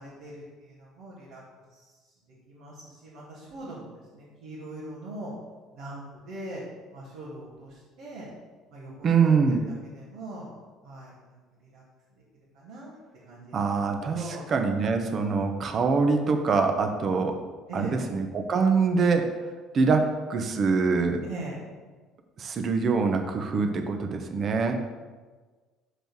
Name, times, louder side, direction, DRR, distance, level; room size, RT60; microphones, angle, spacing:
voice 1, 0.0-1.4 1.7-1.9 2.5-5.3 5.7-6.6 6.9-8.3 8.7-9.3 9.7-10.6 10.8-11.8 12.5-12.9 13.2-13.5 14.1-14.5 17.7-18.1 21.2-21.6, right 1 dB, 75° right, -8 dB, 2.1 m, -41 dB
voice 2, 9.0-9.6 13.5-17.4 17.7-19.3 19.7-21.2 22.4-24.7, right 4 dB, 45° right, 5 dB, 1.0 m, -24 dB
6.2 x 5.1 x 6.2 m, 1.4 s
hypercardioid pair, 60°, 0 cm